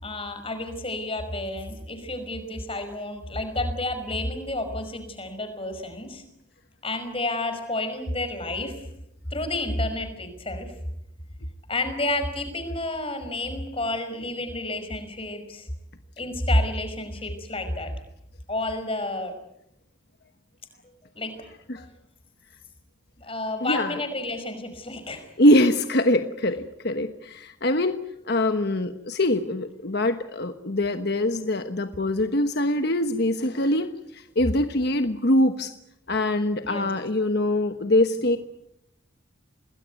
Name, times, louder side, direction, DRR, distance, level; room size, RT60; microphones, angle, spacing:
voice 1, 0.0-6.2 6.8-8.8 9.3-10.7 11.7-15.7 16.2-17.9 18.5-19.3 20.8-21.5 21.8-21.9 23.2-25.3 36.6-36.9, left 1 dB, 30° left, 8 dB, 5.4 m, -30 dB
voice 2, 23.6-24.0 25.4-28.0 28.3-35.7 36.1-38.4, left 1 dB, 55° left, 8 dB, 1.2 m, -23 dB
27.5 x 20.0 x 9.5 m, 0.83 s
head